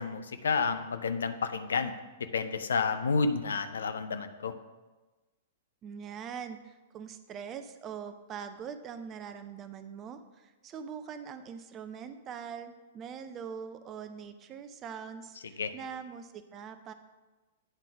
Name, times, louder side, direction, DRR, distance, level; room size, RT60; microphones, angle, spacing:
voice 1, 0.0-4.5 15.6-15.7, left 4 dB, 65° left, 9 dB, 0.5 m, -30 dB
voice 2, 5.8-16.9, right 7 dB, 25° right, 10 dB, 0.5 m, -43 dB
8.7 x 3.8 x 6.1 m, 1.2 s
figure-of-eight pair, 105°, 0 cm